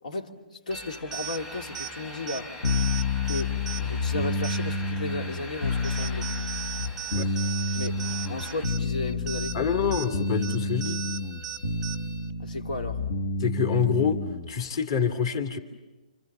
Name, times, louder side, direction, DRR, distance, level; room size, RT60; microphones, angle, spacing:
voice 1, 0.0-2.6 3.2-6.3 7.7-9.7 12.4-13.1, left 2 dB, 70° left, 4 dB, 2.8 m, -34 dB
sound 1, 0.7-8.7, left 2 dB, 10° left, 1.6 m, -44 dB
sound 2, 0.7-12.3, right 9 dB, 10° right, 0.9 m, -39 dB
sound 3, 2.6-14.5, left 3 dB, 55° left, 1.9 m, -29 dB
voice 2, 9.5-11.0 13.4-14.2 14.5-15.6, left 6 dB, 40° left, 5 dB, 2.7 m, -26 dB
29.5 x 26.5 x 6.8 m, 1.1 s
hypercardioid pair, 155°, 4 cm